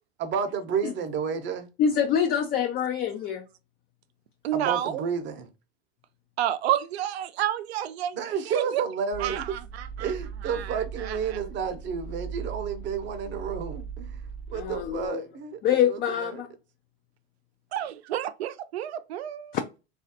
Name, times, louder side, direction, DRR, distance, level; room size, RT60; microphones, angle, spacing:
voice 1, 0.2-1.7 4.5-5.5 8.1-9.4 10.0-14.2 14.5-16.4, right 7 dB, 35° right, 0.7 m, -31 dB
voice 2, 1.8-3.5 14.5-15.2 15.6-16.5, left 8 dB, 30° left, 0.4 m, -25 dB
voice 3, 4.4-5.0 6.4-8.8 9.2-10.1 10.5-11.2 17.7-19.6, right 11 dB, 85° right, 0.5 m, -30 dB
sound 1, 9.1-15.1, right 6 dB, 70° left, 0.9 m, -39 dB
3.1 x 2.4 x 2.7 m
hypercardioid pair, 95°, 31 cm